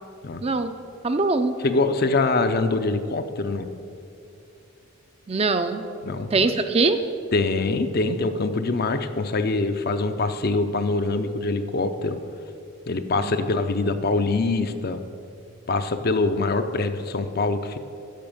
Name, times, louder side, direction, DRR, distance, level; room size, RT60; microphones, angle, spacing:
voice 1, 0.4-0.7 1.0-1.6 5.3-5.8 6.3-7.0 13.2-13.3, right 3 dB, 25° right, 8 dB, 0.4 m, -22 dB
voice 2, 1.6-3.7 6.0-6.5 7.3-12.2 12.9-15.0 15.7-17.8, left 3 dB, 45° left, 9 dB, 0.5 m, -24 dB
10.5 x 6.9 x 7.2 m, 2.6 s
head